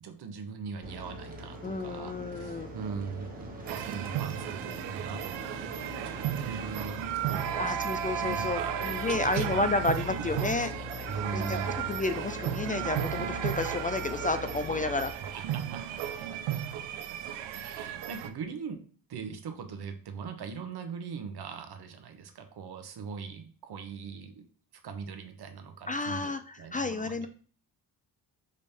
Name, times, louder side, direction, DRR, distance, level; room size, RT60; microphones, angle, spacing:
voice 1, 0.0-10.3 10.6-10.7 11.1-12.0 14.9-17.2 17.5-18.8 19.1-24.5 24.8-26.3 26.6-27.3, right 6 dB, 60° right, 7 dB, 0.9 m, -41 dB
sound 1, 0.8-15.1, left 2 dB, 20° right, 1.2 m, -42 dB
voice 2, 1.6-2.8 7.6-10.7 11.3-15.3 25.9-27.3, left 3 dB, 20° left, 10 dB, 0.3 m, -31 dB
sound 2, 3.7-18.3, right 10 dB, 85° right, 0.5 m, -34 dB
5.3 x 2.6 x 3.4 m, 0.42 s
supercardioid pair, 60°, 43 cm